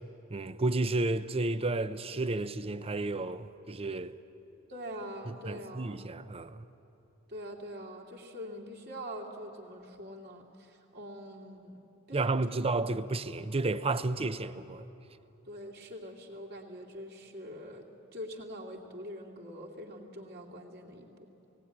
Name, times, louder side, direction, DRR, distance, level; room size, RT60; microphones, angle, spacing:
voice 1, 0.3-4.2 5.3-6.6 12.1-14.9, right 2 dB, 25° right, 0.6 m, -32 dB
voice 2, 4.7-6.0 7.3-11.8 12.1-12.7 15.5-17.9 18.1-21.3, equal, 50° right, 2.6 m, -44 dB
18.5 x 17.5 x 9.9 m
head